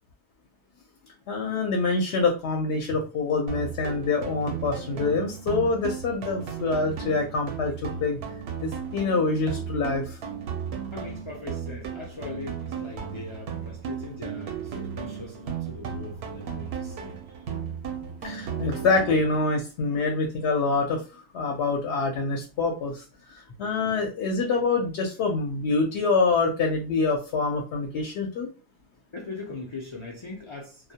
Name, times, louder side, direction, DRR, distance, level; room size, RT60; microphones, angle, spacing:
voice 1, 1.3-8.2 8.6-10.2 18.2-21.0 21.3-28.5, left 3 dB, 75° left, 0.8 m, -26 dB
sound 1, 3.5-19.5, right 7 dB, 75° right, 0.8 m, -35 dB
voice 2, 10.9-17.2 23.9-24.0 29.1-30.9, left 3 dB, 45° left, 0.4 m, -40 dB
2.2 x 2.1 x 2.7 m
omnidirectional pair, 1.1 m